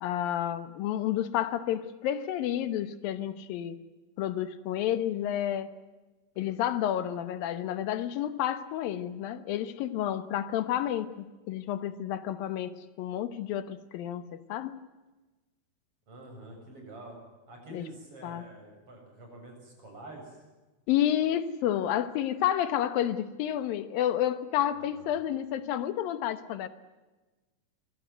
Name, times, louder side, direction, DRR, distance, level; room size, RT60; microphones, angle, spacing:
voice 1, 0.0-3.8 4.2-5.7 6.4-14.8 17.7-17.8 18.2-18.5 20.9-26.7, left 11 dB, 70° left, 12 dB, 2.4 m, -30 dB
voice 2, 16.1-17.2 17.5-20.4 24.7-25.2, right 1 dB, 30° right, 2 dB, 8.3 m, -47 dB
24.5 x 17.5 x 9.3 m, 1.2 s
omnidirectional pair, 5.1 m